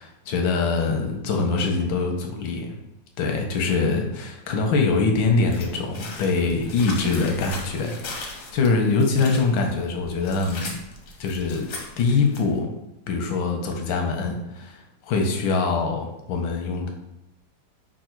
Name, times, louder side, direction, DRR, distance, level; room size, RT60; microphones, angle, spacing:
voice 1, 0.0-2.7 3.2-10.8 11.2-11.7 12.0-12.7 13.1-14.8 15.0-16.9, left 4 dB, 90° left, 3 dB, 1.5 m, -23 dB
sound 1, 5.5-12.6, left 3 dB, 60° left, 0.8 m, -38 dB
4.8 x 2.5 x 4.4 m, 0.87 s
omnidirectional pair, 2.0 m